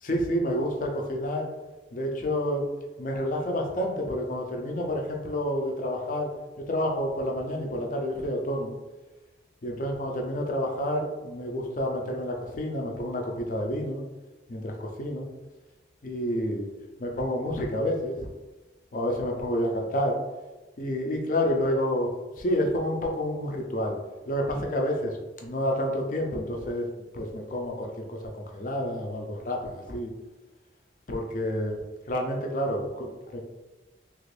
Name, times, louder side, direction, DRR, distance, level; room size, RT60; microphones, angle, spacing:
voice 1, 0.0-1.5 1.9-2.7 3.0-6.3 6.6-8.8 9.6-14.0 14.5-15.3 16.0-16.7 17.0-18.3 18.9-20.2 20.8-24.0 24.3-26.9 27.1-30.1 31.1-31.8 32.1-33.4, equal, 45° left, 1 dB, 0.5 m, -29 dB
3.0 x 2.5 x 3.2 m, 1.1 s
head